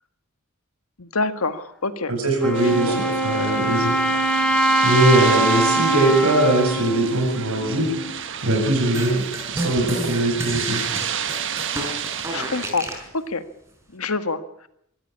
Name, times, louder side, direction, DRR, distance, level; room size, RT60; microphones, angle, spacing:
voice 1, 1.0-2.1 2.7-3.0 12.3-12.9 13.3-13.4 13.9-14.4, left 3 dB, 90° left, 10 dB, 1.7 m, -26 dB
voice 2, 2.1-4.0 4.8-7.9 8.4-10.8, right 1 dB, 85° right, 3 dB, 7.7 m, -21 dB
Wind instrument woodwind instrument, 2.4-8.1, right 1 dB, 5° left, 2.2 m, -22 dB
sound 1, 2.5-12.7, right 9 dB, 60° right, 1.5 m, -31 dB
sound 2, 8.9-13.1, right 1 dB, 15° right, 5.0 m, -31 dB
24.5 x 13.5 x 8.6 m, 0.75 s
head